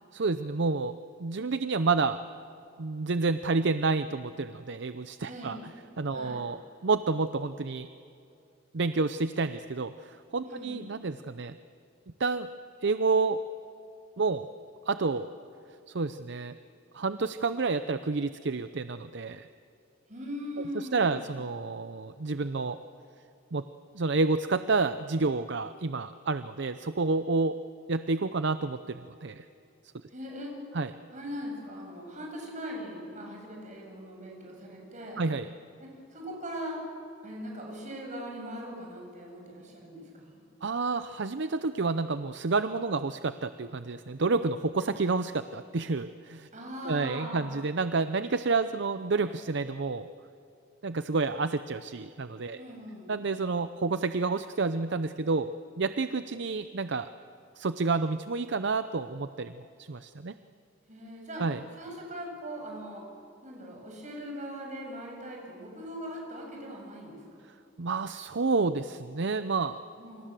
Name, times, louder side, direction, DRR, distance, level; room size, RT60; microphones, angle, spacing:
voice 1, 0.1-0.9 1.2-2.2 2.8-5.6 6.0-7.9 8.7-11.6 12.2-12.5 12.8-13.4 14.2-14.5 14.9-15.3 15.9-16.5 16.9-19.5 20.7-22.8 23.5-23.6 23.9-27.6 27.9-29.4 30.7-30.9 35.2-35.5 40.6-46.5 46.8-50.1 50.8-52.6 53.1-55.5 55.8-57.1 57.6-59.5 59.8-60.3 61.4-61.6 67.8-69.8, right 3 dB, 60° right, 11 dB, 0.7 m, -29 dB
voice 2, 5.3-5.6 6.1-6.4 10.4-10.8 20.1-21.3 30.1-30.6 31.1-35.2 35.8-36.8 37.2-40.4 46.5-47.5 52.5-53.2 60.9-61.4 61.8-63.1 63.4-67.2 70.0-70.3, equal, 40° right, 0 dB, 8.0 m, -40 dB
28.0 x 26.0 x 7.7 m, 2.6 s
head